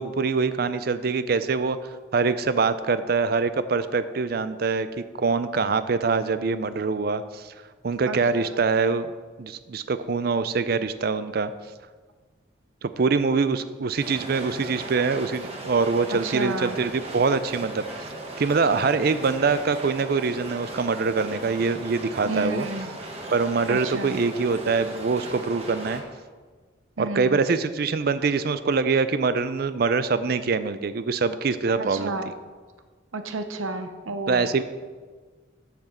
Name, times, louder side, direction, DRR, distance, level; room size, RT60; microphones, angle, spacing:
voice 1, 0.0-1.8 2.1-7.5 7.8-9.1 9.4-11.5 12.8-17.9 18.4-22.7 23.3-26.0 27.0-32.2 34.3-34.6, right 4 dB, 50° right, 13 dB, 0.4 m, -24 dB
voice 2, 8.1-8.5 16.1-16.8 22.3-22.9 23.7-24.2 27.0-27.4 31.8-32.3 33.1-34.5, right 2 dB, 80° right, 8 dB, 0.7 m, -31 dB
sound 1, 14.0-26.0, right 2 dB, 30° right, 1.1 m, -37 dB
7.1 x 6.0 x 6.5 m, 1.4 s
head